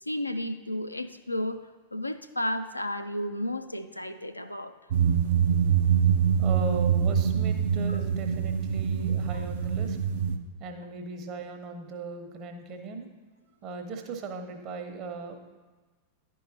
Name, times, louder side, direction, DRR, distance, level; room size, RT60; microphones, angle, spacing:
voice 1, 0.0-1.6 1.9-4.7 9.3-9.4, left 1 dB, 85° left, 9 dB, 0.3 m, -32 dB
sound 1, 4.9-10.4, right 8 dB, 55° right, 0.4 m, -25 dB
voice 2, 6.1-10.0 10.6-13.1 13.6-15.4, right 4 dB, 40° right, 5 dB, 0.8 m, -38 dB
10.5 x 4.6 x 2.7 m, 1.3 s
figure-of-eight pair, 90°, 0 cm